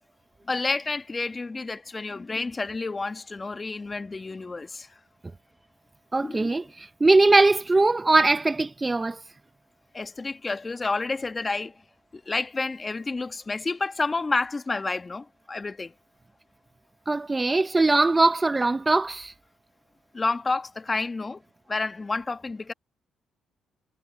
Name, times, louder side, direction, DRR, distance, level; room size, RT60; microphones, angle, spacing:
voice 1, 0.5-4.9 6.2-6.6 9.9-11.7 12.1-15.9 20.1-21.4 21.7-22.7, left 3 dB, 30° left, 1.9 m, -30 dB
voice 2, 6.1-9.2 17.1-19.3, right 3 dB, 25° right, 1.4 m, -21 dB
supercardioid pair, 60°, 0 cm